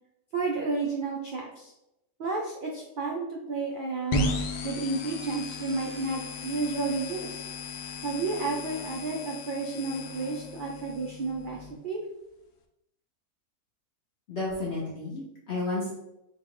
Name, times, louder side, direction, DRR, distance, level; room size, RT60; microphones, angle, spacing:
voice 1, 0.3-1.7 2.2-4.3 4.6-7.5 8.0-12.0, right 3 dB, 80° right, -2 dB, 0.4 m, -31 dB
sound 1, 4.1-11.7, left 2 dB, 80° left, 1.1 m, -35 dB
voice 2, 14.3-15.9, left 2 dB, 55° left, -5 dB, 0.9 m, -32 dB
4.1 x 2.4 x 3.6 m, 0.87 s
omnidirectional pair, 1.6 m